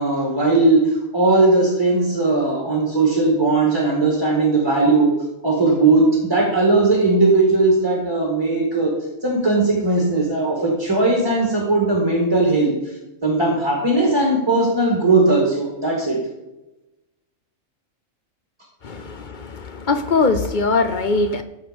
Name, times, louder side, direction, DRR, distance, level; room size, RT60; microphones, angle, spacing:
voice 1, 0.0-5.1 5.4-8.9 9.2-12.9 13.2-16.2, right 2 dB, 20° right, -2 dB, 2.0 m, -18 dB
voice 2, 18.8-21.4, left 3 dB, 50° left, 10 dB, 0.6 m, -21 dB
14.0 x 5.7 x 5.2 m, 0.97 s
omnidirectional pair, 1.4 m